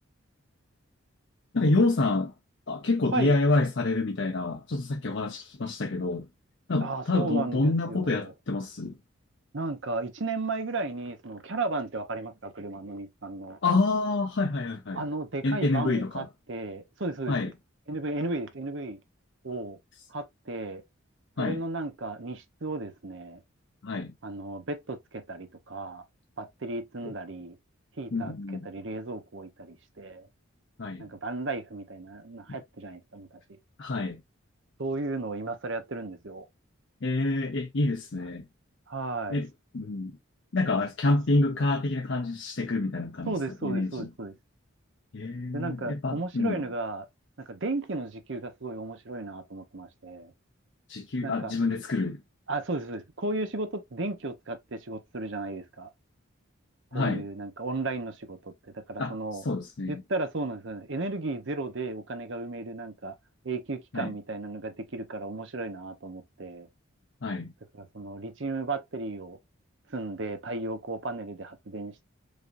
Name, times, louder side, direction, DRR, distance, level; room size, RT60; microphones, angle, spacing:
voice 1, 1.5-2.3 2.7-6.3 6.7-9.0 13.6-15.0 15.4-16.3 17.3-17.5 21.4-21.6 23.8-24.1 28.1-28.7 30.8-31.1 33.8-34.2 37.0-38.5 39.3-39.5 39.7-40.2 40.5-44.1 45.1-46.6 50.9-52.2 56.9-57.2 59.0-59.1 59.4-60.0 63.9-64.1 67.2-67.5, left 2 dB, 55° left, 0.6 m, -27 dB
voice 2, 6.8-8.3 9.5-13.6 14.9-17.5 17.9-19.0 19.4-19.8 20.1-20.8 21.4-23.4 24.2-26.0 26.4-27.6 28.0-28.3 28.6-30.3 31.0-33.6 34.8-36.5 38.9-39.4 43.3-44.3 45.5-47.1 47.4-50.3 51.2-51.5 52.5-55.9 56.9-59.4 59.9-63.1 63.4-66.7 67.7-69.4 69.9-72.0, right 2 dB, 60° right, 0.8 m, -34 dB
4.9 x 2.8 x 2.5 m
head